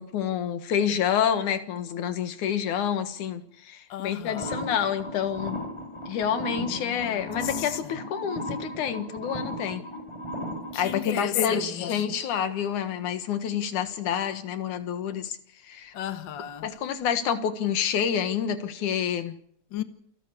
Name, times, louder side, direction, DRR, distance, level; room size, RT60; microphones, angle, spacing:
voice 1, 0.0-5.6 6.1-9.9 10.8-15.4 15.7-15.9 16.6-19.4, left 8 dB, 85° left, 3.0 m, -28 dB
voice 2, 3.9-4.6 6.7-8.0 10.7-12.1 15.9-16.7 19.7-19.8, left 12 dB, 50° left, 1.7 m, -35 dB
sound 1, 4.3-10.9, equal, 10° left, 5.0 m, -36 dB
28.5 x 12.0 x 8.4 m
omnidirectional pair, 3.4 m